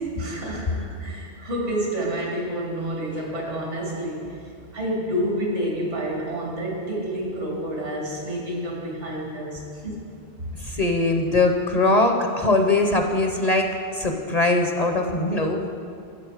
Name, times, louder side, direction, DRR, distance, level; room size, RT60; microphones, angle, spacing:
voice 1, 0.1-10.1, right 1 dB, 80° right, -2 dB, 2.5 m, -29 dB
voice 2, 10.6-15.7, left 2 dB, 40° left, 3 dB, 0.7 m, -21 dB
11.0 x 7.9 x 4.9 m, 2.3 s
omnidirectional pair, 1.2 m